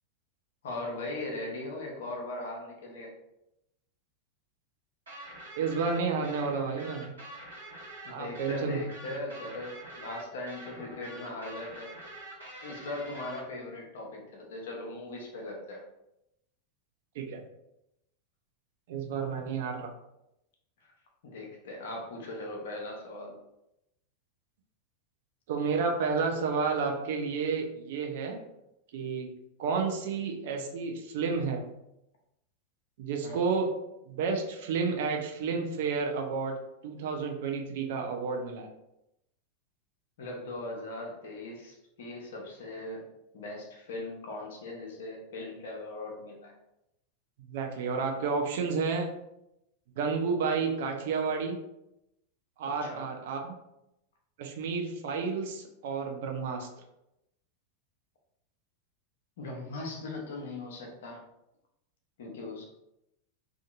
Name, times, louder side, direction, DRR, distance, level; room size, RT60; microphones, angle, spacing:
voice 1, 0.6-3.1 8.0-11.9 12.6-15.8 20.8-20.9 21.2-23.3 33.2-33.4 40.2-43.0 43.3-46.5 52.8-53.1 59.4-61.2 62.2-62.6, left 2 dB, 60° left, 0 dB, 0.7 m, -39 dB
sound 1, 5.1-13.4, right 1 dB, 70° right, 1.0 m, -46 dB
voice 2, 5.6-7.1 8.1-8.8 17.2-17.4 18.9-19.9 25.5-28.4 28.9-29.3 29.6-31.6 33.0-33.7 34.1-38.7 47.5-49.1 50.0-51.6 52.6-53.5 54.4-56.7, right 5 dB, 55° right, 2 dB, 0.4 m, -31 dB
2.7 x 2.4 x 2.3 m, 0.86 s
figure-of-eight pair, 90°, 0 cm